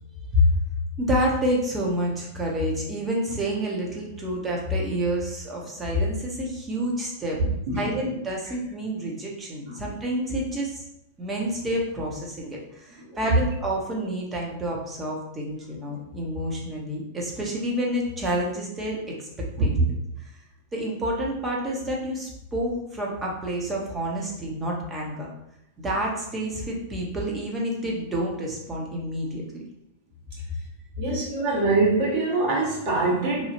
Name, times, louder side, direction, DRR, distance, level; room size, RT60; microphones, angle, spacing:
voice 1, 1.0-7.4 7.7-10.9 11.2-19.3 19.6-19.7 20.2-20.3 20.7-25.3 25.8-29.6, equal, 20° right, -2 dB, 0.9 m, -28 dB
voice 2, 31.0-33.5, right 2 dB, 50° right, -5 dB, 1.3 m, -24 dB
2.8 x 2.3 x 2.9 m, 0.81 s
hypercardioid pair, 100°, 0 cm